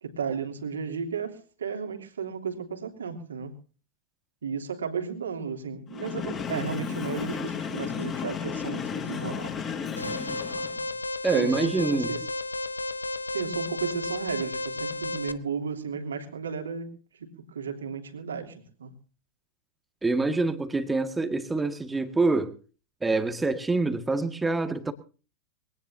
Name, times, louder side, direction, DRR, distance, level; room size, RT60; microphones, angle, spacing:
voice 1, 0.0-3.5 4.4-10.2 11.3-12.2 13.3-18.9, right 6 dB, 70° right, 3.2 m, -34 dB
Train, 5.9-10.9, left 6 dB, 30° left, 5.5 m, -33 dB
Alarm, 10.0-15.3, left 2 dB, 80° left, 1.0 m, -33 dB
voice 2, 11.2-12.2 20.0-22.6 23.0-24.9, right 3 dB, 10° right, 1.9 m, -26 dB
23.0 x 18.0 x 2.8 m
figure-of-eight pair, 90°, 0 cm